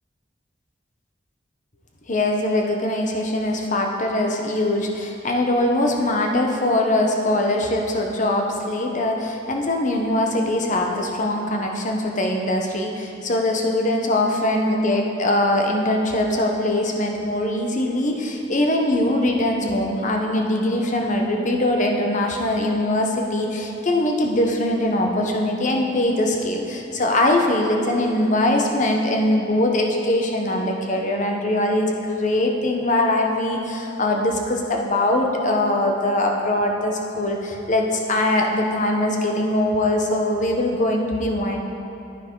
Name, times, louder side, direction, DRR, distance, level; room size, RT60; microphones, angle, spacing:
voice 1, 2.1-41.6, left 1 dB, 45° left, 2 dB, 1.0 m, -22 dB
9.7 x 9.5 x 3.8 m, 2.8 s
head